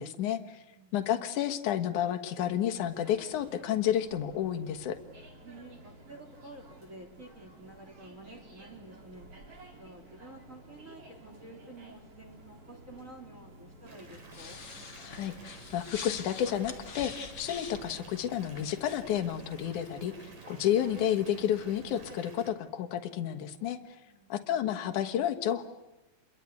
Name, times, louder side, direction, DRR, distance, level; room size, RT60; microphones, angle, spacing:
voice 1, 0.0-0.6 0.9-5.0 15.0-24.0 24.3-25.6, left 10 dB, 70° left, 8 dB, 2.8 m, -31 dB
sound 1, 2.7-22.2, right 2 dB, 45° right, 5.4 m, -53 dB
voice 2, 5.4-9.3 9.8-14.6 24.1-24.4, right 2 dB, 25° right, 2 dB, 3.5 m, -50 dB
Water tap faucet / Bathtub (filling or washing) / Fill (with liquid), 13.9-22.5, right 3 dB, 75° right, 6.4 m, -53 dB
sound 2, 14.3-19.7, left 5 dB, 35° left, 2.0 m, -45 dB
29.5 x 23.0 x 8.3 m, 1.0 s
omnidirectional pair, 3.9 m